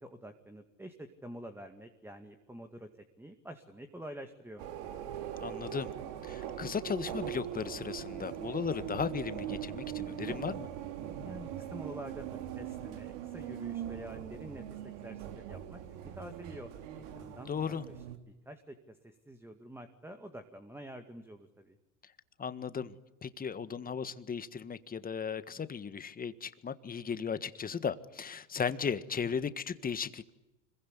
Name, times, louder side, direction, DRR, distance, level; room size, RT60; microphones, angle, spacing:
voice 1, 0.0-2.9 3.2-4.6 11.2-16.7 17.1-21.8, right 1 dB, 5° right, 6 dB, 2.2 m, -48 dB
sound 1, 4.6-18.2, right 10 dB, 65° right, 3.2 m, -41 dB
voice 2, 5.4-5.9 6.2-10.7 17.5-17.8 22.4-22.9 23.2-30.3, left 6 dB, 20° left, 12 dB, 1.7 m, -36 dB
26.0 x 22.5 x 10.0 m, 0.98 s
supercardioid pair, 105°, 40 cm